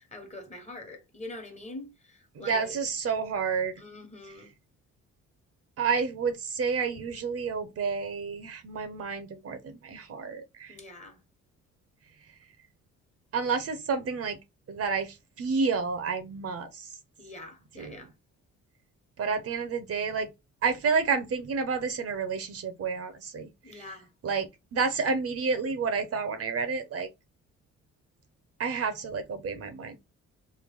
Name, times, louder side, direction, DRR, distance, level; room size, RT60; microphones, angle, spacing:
voice 1, 0.0-2.8 3.8-4.5 10.7-11.2 17.2-18.1 23.6-24.1, left 2 dB, 25° left, 1.2 m, -44 dB
voice 2, 2.3-3.7 5.8-10.8 13.3-14.4 14.7-16.9 17.7-18.0 19.2-20.3 20.6-23.9 24.2-27.1 28.6-30.0, right 5 dB, 50° right, 0.8 m, -30 dB
3.3 x 2.2 x 3.6 m
cardioid pair, 90°, 30 cm